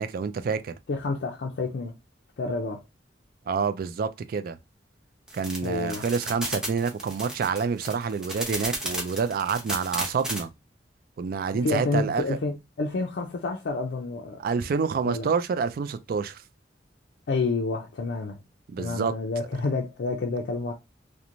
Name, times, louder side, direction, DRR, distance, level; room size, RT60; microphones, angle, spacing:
voice 1, 0.0-0.7 3.5-4.6 5.3-10.5 11.2-12.4 14.4-16.4 18.7-19.1, right 5 dB, 55° right, 0.3 m, -28 dB
voice 2, 0.9-2.0 2.4-2.8 5.6-6.0 11.6-14.5 15.0-15.3 17.3-18.4 18.8-20.7, left 3 dB, 65° left, 0.4 m, -29 dB
sound 1, 5.3-10.4, right 1 dB, 5° right, 0.7 m, -32 dB
2.9 x 2.1 x 2.5 m
head